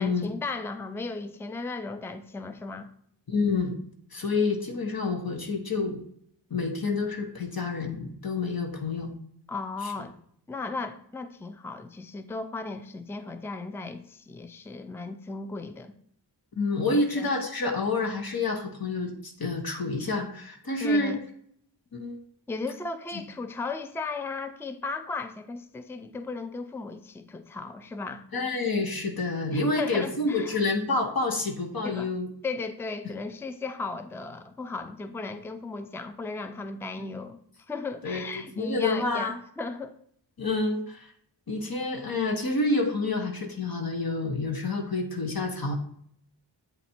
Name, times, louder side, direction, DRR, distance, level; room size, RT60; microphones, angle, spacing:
voice 1, 0.0-2.9 9.5-10.1 10.5-15.9 16.9-17.3 20.8-21.2 22.5-28.2 29.5-30.7 31.8-32.1 32.4-37.4 37.7-39.9, left 3 dB, 5° left, 9 dB, 0.4 m, -36 dB
voice 2, 3.3-3.7 4.1-6.0 6.5-9.1 9.8-9.9 16.6-21.2 21.9-22.2 28.3-32.3 38.0-39.3 40.4-41.1 41.5-45.7, left 3 dB, 55° left, 2 dB, 1.1 m, -28 dB
8.0 x 4.1 x 4.3 m, 0.65 s
wide cardioid pair, 80°, 42 cm